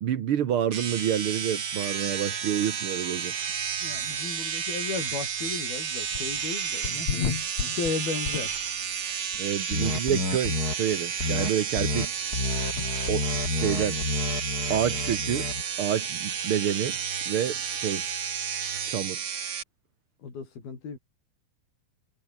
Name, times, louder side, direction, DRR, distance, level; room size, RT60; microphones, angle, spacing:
voice 1, 0.0-3.4 9.4-12.2 13.1-13.2 13.5-14.0 14.7-15.5 15.8-17.0 17.3-18.1 18.8-19.2, right 9 dB, 85° right, 1.2 m, -28 dB
sound 1, 0.7-19.6, right 7 dB, 60° right, 1.1 m, -32 dB
voice 2, 3.8-7.3 7.7-8.5 20.2-21.0, left 5 dB, 70° left, 7.4 m, -35 dB
sound 2, 6.1-6.5 6.8-8.9 9.3-9.4 10.0-10.1 10.3-10.4 10.9-11.0 12.8-12.9, left 7 dB, 50° left, 3.4 m, -33 dB
sound 3, 9.7-10.7 11.2-11.5 11.8-12.1 12.3-15.6, left 3 dB, 25° left, 3.8 m, -30 dB
omnidirectional pair, 4.4 m